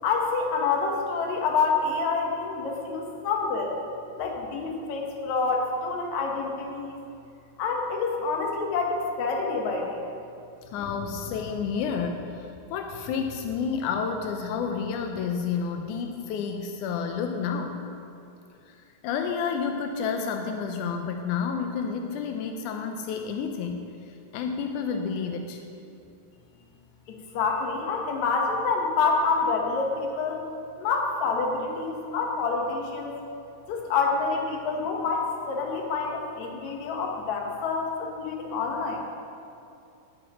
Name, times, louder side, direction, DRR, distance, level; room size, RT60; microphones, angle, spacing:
voice 1, 0.0-3.8 4.2-7.0 7.6-10.0 27.1-30.4 30.8-33.2 33.7-39.0, left 4 dB, 70° left, 1 dB, 2.4 m, -27 dB
voice 2, 10.7-17.8 19.0-23.9 24.3-25.6, left 6 dB, 90° left, 4 dB, 2.1 m, -30 dB
18.0 x 9.3 x 3.0 m, 2.6 s
omnidirectional pair, 3.5 m